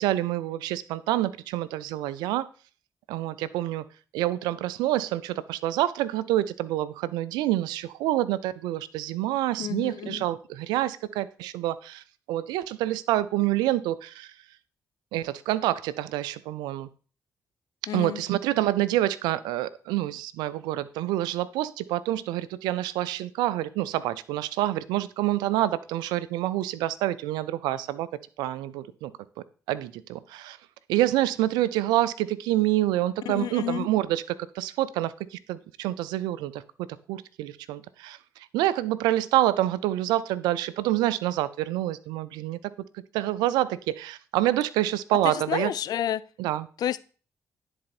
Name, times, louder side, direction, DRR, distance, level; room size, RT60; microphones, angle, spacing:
voice 1, 0.0-2.5 3.1-3.8 4.1-14.3 15.1-16.9 17.9-28.1 28.4-29.1 29.7-30.6 30.9-42.6 42.9-45.7 46.4-46.7, right 14 dB, 85° right, 17 dB, 0.4 m, -27 dB
voice 2, 9.6-10.2 17.9-18.2 33.3-33.9 45.5-46.2 46.8-47.0, left 11 dB, 70° left, 17 dB, 0.4 m, -30 dB
10.0 x 4.2 x 4.3 m, 0.38 s
supercardioid pair, 50°, 7 cm